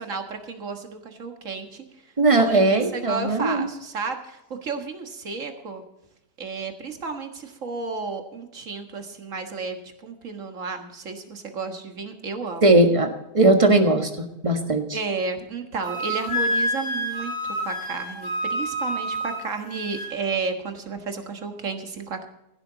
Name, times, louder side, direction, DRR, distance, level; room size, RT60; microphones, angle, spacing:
voice 1, 0.0-1.9 2.3-5.8 6.4-12.6 14.9-22.3, right 4 dB, 55° right, 5 dB, 1.9 m, -32 dB
voice 2, 2.2-3.7 12.6-13.1 13.3-14.1 14.4-15.0, right 2 dB, 20° right, 5 dB, 1.5 m, -18 dB
Wind instrument woodwind instrument, 15.8-20.1, equal, 35° left, 6.2 m, -28 dB
16.0 x 11.5 x 4.0 m, 0.87 s
omnidirectional pair, 1.6 m